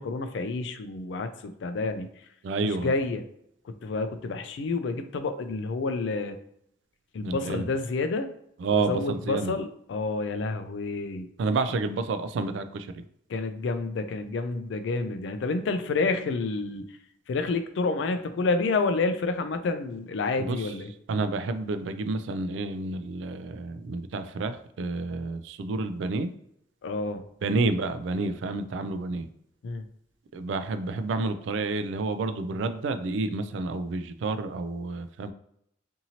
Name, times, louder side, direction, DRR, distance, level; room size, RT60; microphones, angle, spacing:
voice 1, 0.0-2.1 2.6-3.2 3.6-6.4 7.1-8.3 8.7-11.3 13.3-17.0 17.3-20.9 26.8-27.3 29.6-29.9, left 3 dB, 80° left, 9 dB, 0.3 m, -29 dB
voice 2, 2.4-2.9 7.2-7.6 8.6-9.5 11.4-13.0 20.4-20.6 21.1-26.3 27.4-29.3 30.3-35.3, right 3 dB, 90° right, 10 dB, 0.3 m, -29 dB
2.8 x 2.6 x 2.7 m, 0.74 s
head